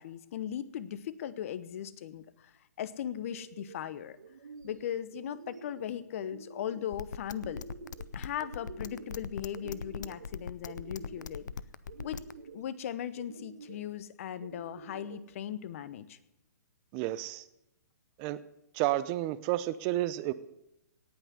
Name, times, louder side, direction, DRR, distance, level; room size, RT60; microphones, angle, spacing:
voice 1, 0.0-4.2 4.6-7.7 8.1-11.4 12.0-12.2 12.5-16.2, left 10 dB, 50° left, 14 dB, 1.0 m, -38 dB
sound 1, 3.3-3.8 4.2-4.8 5.1-5.9 6.2-6.9 7.3-8.1 8.4-9.2 9.5-10.3 10.6-11.4 11.9-12.6 13.2-13.8 14.4-15.2, right 4 dB, 80° right, 1.7 m, -48 dB
sound 2, 6.9-12.3, left 6 dB, 85° left, 0.7 m, -39 dB
voice 2, 16.9-17.4 18.2-18.4 18.7-20.3, right 15 dB, 30° right, 14 dB, 0.6 m, -31 dB
18.0 x 5.9 x 9.5 m, 0.84 s
hypercardioid pair, 145°, 9 cm